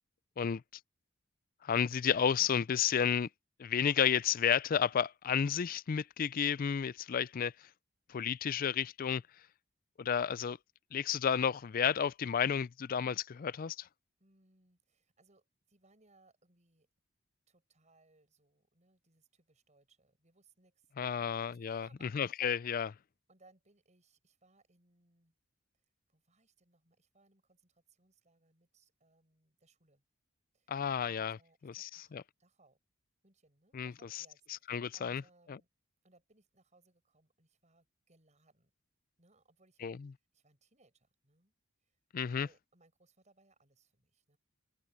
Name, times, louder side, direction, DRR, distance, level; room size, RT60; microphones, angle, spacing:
voice 1, 1.6-3.3 3.6-7.5 8.1-9.2 10.0-10.6 10.9-13.9 21.0-21.9 22.1-22.9 30.7-31.4 31.6-32.2 33.7-34.2 34.7-35.2 35.5-35.6 39.8-40.1 42.1-42.5, left 7 dB, 45° left, 0.4 m, -32 dB
voice 2, 14.2-16.9 17.5-22.5 23.3-25.3 26.1-30.0 30.5-30.7 31.0-32.8 33.2-35.7 36.0-38.7 39.2-39.9 40.3-41.5 41.8-42.0 42.3-44.4, right 2 dB, 35° right, 6.7 m, -69 dB
head